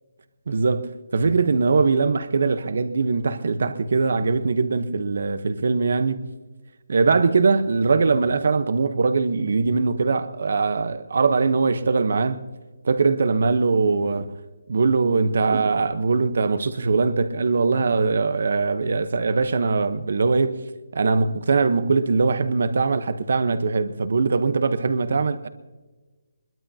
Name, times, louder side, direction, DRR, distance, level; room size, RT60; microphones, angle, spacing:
voice 1, 0.5-6.3 6.9-12.5 12.8-14.3 14.7-20.6 20.9-25.5, right 4 dB, 50° right, 0.9 m, -21 dB
23.5 x 21.5 x 2.8 m
hypercardioid pair, 175°, 0 cm